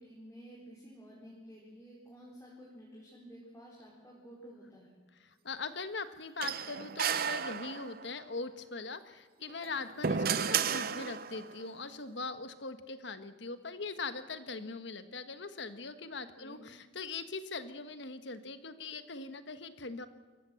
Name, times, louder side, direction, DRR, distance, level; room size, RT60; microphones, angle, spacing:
voice 1, 0.0-5.0 16.2-16.6, equal, 15° left, -5 dB, 4.3 m, -52 dB
voice 2, 5.2-20.1, left 4 dB, 70° left, 10 dB, 1.4 m, -41 dB
sound 1, 6.4-8.1 9.5-11.5, right 7 dB, 50° right, 0.7 m, -33 dB
26.0 x 15.0 x 7.8 m, 1.4 s
head